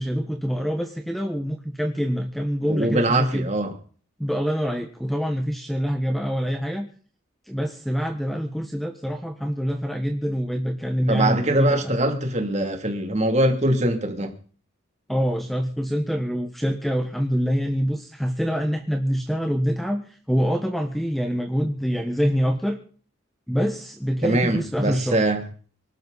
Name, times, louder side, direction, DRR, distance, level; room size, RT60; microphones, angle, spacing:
voice 1, 0.0-3.5 4.2-6.8 7.5-12.0 15.1-20.0 20.3-22.8 23.5-25.2, equal, ahead, 1.4 m, -25 dB
voice 2, 2.7-3.7 11.1-14.3 24.2-25.4, right 1 dB, 35° right, 2.9 m, -22 dB
25.0 x 12.0 x 4.2 m
head